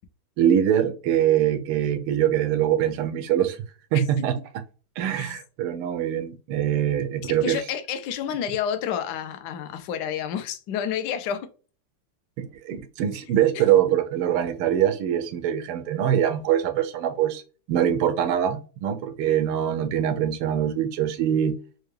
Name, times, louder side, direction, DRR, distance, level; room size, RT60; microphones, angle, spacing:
voice 1, 0.4-3.6 3.9-4.4 5.0-7.6 12.4-17.4 17.7-21.6, right 10 dB, 90° right, 1.5 m, -23 dB
voice 2, 7.2-11.5, left 9 dB, 75° left, 1.0 m, -29 dB
4.6 x 2.2 x 3.1 m
omnidirectional pair, 2.4 m